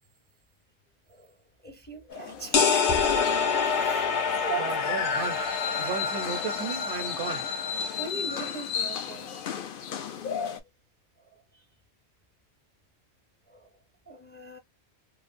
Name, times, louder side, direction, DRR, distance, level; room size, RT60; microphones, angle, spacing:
voice 1, 1.6-4.1 4.4-4.8 5.7-5.8 7.1-7.2 7.7-9.4 10.5-10.6 11.3-11.7 13.5-13.8 14.1-14.6, right 3 dB, 15° left, 0.4 m, -40 dB
sound 1, 2.1-10.6, left 6 dB, 60° left, 0.7 m, -34 dB
sound 2, 2.5-8.1, left 6 dB, 90° left, 1.0 m, -27 dB
sound 3, 2.9-4.3, right 4 dB, 55° right, 0.5 m, -40 dB
voice 2, 4.6-5.5 5.8-7.5, right 6 dB, 80° right, 0.9 m, -35 dB
3.1 x 2.0 x 2.5 m
omnidirectional pair, 1.1 m